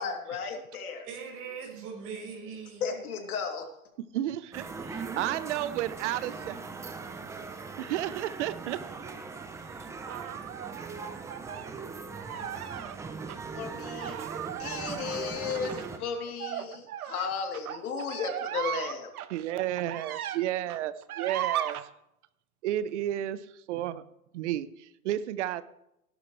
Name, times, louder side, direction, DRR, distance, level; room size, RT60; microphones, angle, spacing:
voice 1, 0.0-1.1 2.8-3.7 13.5-14.2 14.6-19.1, left 6 dB, 75° left, 3.3 m, -34 dB
voice 2, 1.0-3.0, right 5 dB, 30° right, 5.6 m, -41 dB
voice 3, 4.0-6.6 7.8-8.8 19.3-21.8 22.6-24.0 24.3-25.6, right 12 dB, 50° right, 0.9 m, -32 dB
sound 1, 4.5-16.0, right 4 dB, 5° right, 0.7 m, -40 dB
sound 2, 10.1-11.7 12.2-13.0 13.3-13.4 13.9-20.4 20.7-21.8, right 11 dB, 75° right, 1.1 m, -37 dB
17.0 x 11.5 x 3.3 m
hypercardioid pair, 140°, 45 cm